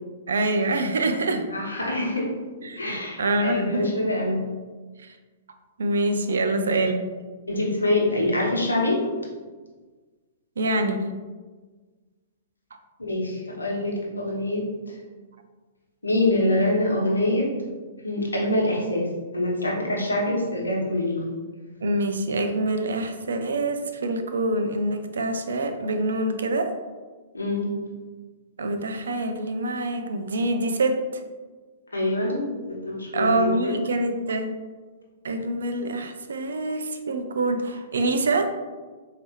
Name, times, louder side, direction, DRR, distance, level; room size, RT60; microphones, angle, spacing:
voice 1, 0.3-1.4 2.6-3.9 5.0-5.1 5.8-7.0 10.6-11.1 21.8-26.7 28.6-31.2 33.1-34.5 35.2-38.5, right 2 dB, 70° right, 7 dB, 0.4 m, -25 dB
voice 2, 1.5-2.3 2.8-4.4 6.5-6.6 7.5-9.0 13.0-14.6 16.0-17.5 18.0-19.1 19.3-21.3 27.3-27.6 31.9-32.4 32.8-33.8, left 1 dB, 85° left, -3 dB, 1.1 m, -25 dB
4.5 x 2.8 x 3.1 m, 1.4 s
figure-of-eight pair, 115°, 0 cm